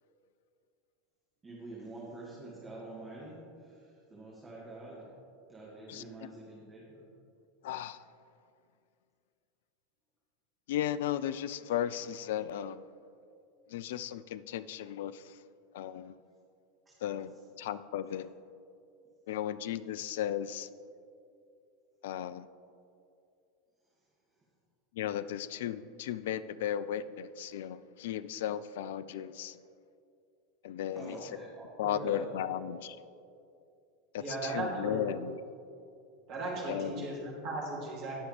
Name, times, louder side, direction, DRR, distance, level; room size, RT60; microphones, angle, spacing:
voice 1, 1.4-3.4 4.1-5.0 5.5-7.0 30.9-32.5, right 1 dB, 20° right, -5 dB, 2.0 m, -45 dB
voice 2, 5.9-6.3 7.6-8.0 10.7-12.8 13.7-15.3 15.7-16.1 17.0-17.3 17.6-18.3 19.3-20.7 22.0-22.5 25.0-29.6 30.6-31.3 31.8-33.0 34.1-35.4 36.7-37.1, left 10 dB, 60° left, 15 dB, 0.3 m, -35 dB
voice 3, 34.2-35.0 36.3-38.2, right 2 dB, 45° right, -3 dB, 2.6 m, -36 dB
18.0 x 6.2 x 3.3 m, 2.5 s
figure-of-eight pair, 80°, 0 cm